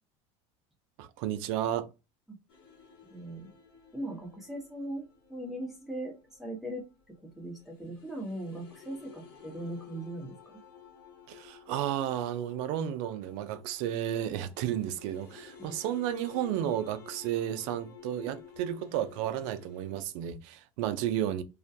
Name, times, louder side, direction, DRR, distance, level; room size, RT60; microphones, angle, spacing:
voice 1, 1.0-1.9 11.3-21.4, right 11 dB, 75° right, 0.4 m, -32 dB
sound 1, 2.5-20.0, left 7 dB, 65° left, 1.2 m, -53 dB
voice 2, 3.1-3.5 3.9-5.0 5.3-6.9 7.4-10.3 15.6-15.8, right 1 dB, ahead, 0.7 m, -39 dB
2.3 x 2.1 x 2.6 m
supercardioid pair, 130°, 16 cm